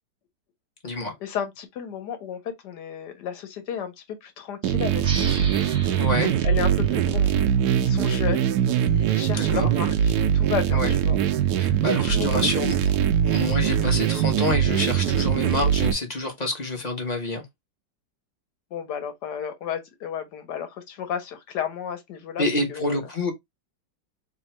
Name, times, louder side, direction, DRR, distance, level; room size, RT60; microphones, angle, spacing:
voice 1, 0.9-5.3 6.4-7.3 7.8-8.5 8.8-11.2 12.0-12.6 18.7-22.4 22.7-23.0, left 8 dB, 65° left, 1.6 m, -33 dB
sound 1, 4.6-15.9, right 9 dB, 70° right, 1.0 m, -22 dB
sound 2, 5.0-8.2, right 3 dB, 30° right, 0.8 m, -37 dB
voice 2, 6.0-6.3 9.3-9.7 10.7-10.9 11.6-12.7 13.3-17.4 22.4-23.3, left 2 dB, 30° left, 0.8 m, -27 dB
3.5 x 2.5 x 4.2 m
omnidirectional pair, 2.0 m